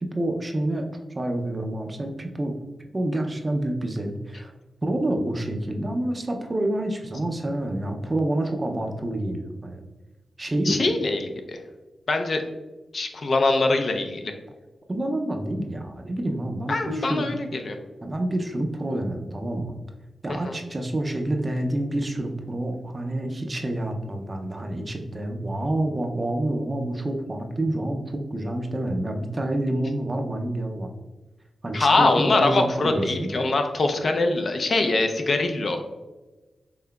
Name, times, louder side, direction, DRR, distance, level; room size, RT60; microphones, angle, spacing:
voice 1, 0.0-0.9 1.1-2.6 2.9-4.5 4.8-9.8 10.4-10.8 14.9-17.2 18.0-19.7 20.2-30.9 31.6-33.3, right 1 dB, 25° right, 4 dB, 0.4 m, -28 dB
voice 2, 10.7-11.6 12.1-12.4 12.9-14.3 16.7-17.8 20.3-20.6 31.7-36.0, left 2 dB, 50° left, 5 dB, 0.4 m, -23 dB
5.6 x 3.8 x 2.2 m, 1.2 s
wide cardioid pair, 145°, 0 cm